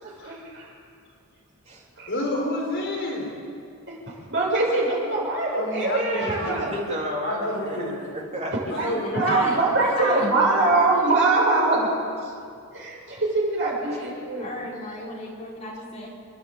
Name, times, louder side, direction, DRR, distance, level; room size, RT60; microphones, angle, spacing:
voice 1, 0.0-0.7 2.0-2.1 3.9-6.7 8.8-11.9 12.7-14.5, right 2 dB, 55° right, -3 dB, 7.0 m, -23 dB
voice 2, 2.1-3.3 5.5-6.7 7.2-8.0 8.7-9.4, left 1 dB, 50° left, -1 dB, 4.2 m, -29 dB
voice 3, 6.6-8.5 12.2-12.4, equal, 30° right, -2 dB, 3.4 m, -32 dB
voice 4, 9.2-11.5 14.4-16.1, equal, 30° left, -4 dB, 4.7 m, -33 dB
29.0 x 11.0 x 8.7 m, 2.3 s
head